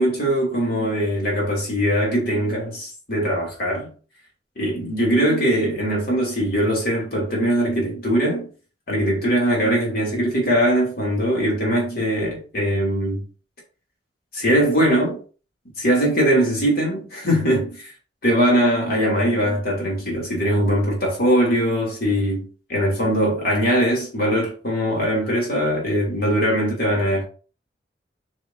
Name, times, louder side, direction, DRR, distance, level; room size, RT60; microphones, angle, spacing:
voice 1, 0.0-3.9 4.6-8.5 8.9-13.2 14.3-15.2 15.8-17.9 18.2-27.2, equal, 55° left, 2.9 m, -21 dB
6.8 x 6.0 x 2.7 m
head